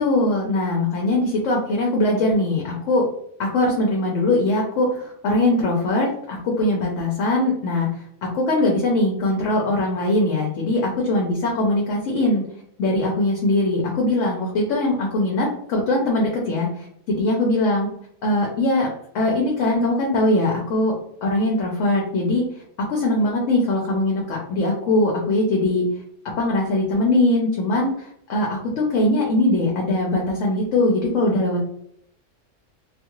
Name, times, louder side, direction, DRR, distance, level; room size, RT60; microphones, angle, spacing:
voice 1, 0.0-3.1 3.4-12.4 12.8-17.9 18.2-18.9 19.1-21.0 21.2-22.4 22.9-25.9 26.4-31.6, left 2 dB, 75° left, -1 dB, 0.9 m, -21 dB
2.4 x 2.4 x 2.9 m, 0.70 s
omnidirectional pair, 1.3 m